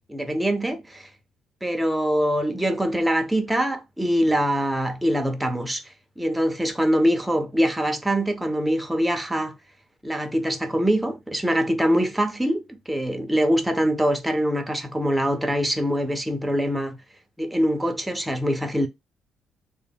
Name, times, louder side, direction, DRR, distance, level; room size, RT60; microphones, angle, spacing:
voice 1, 0.1-1.1 1.6-9.5 10.0-17.0 17.4-18.9, equal, 5° right, 0.6 m, -24 dB
3.2 x 2.1 x 3.4 m
cardioid pair, 95°, 0 cm